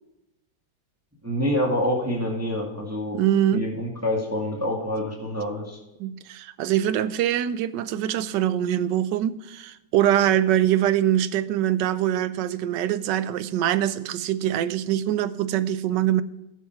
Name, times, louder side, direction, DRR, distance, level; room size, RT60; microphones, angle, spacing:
voice 1, 1.2-3.2 3.5-5.8, left 1 dB, 10° right, 1.8 m, -26 dB
voice 2, 3.1-3.7 6.0-16.2, right 11 dB, 75° right, 1.2 m, -23 dB
11.5 x 7.5 x 4.6 m
omnidirectional pair, 2.0 m